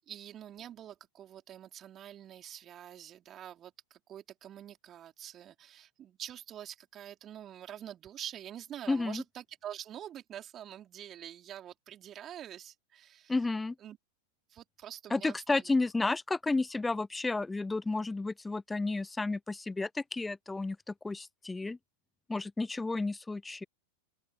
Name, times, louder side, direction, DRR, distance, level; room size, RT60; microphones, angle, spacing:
voice 1, 0.0-13.3 13.8-14.0 14.5-15.7, right 10 dB, 30° right, 4.3 m, -46 dB
voice 2, 8.9-9.2 13.3-13.7 15.1-21.8 22.3-23.6, left 3 dB, 10° left, 0.7 m, -32 dB
open air
figure-of-eight pair, 90°, 0 cm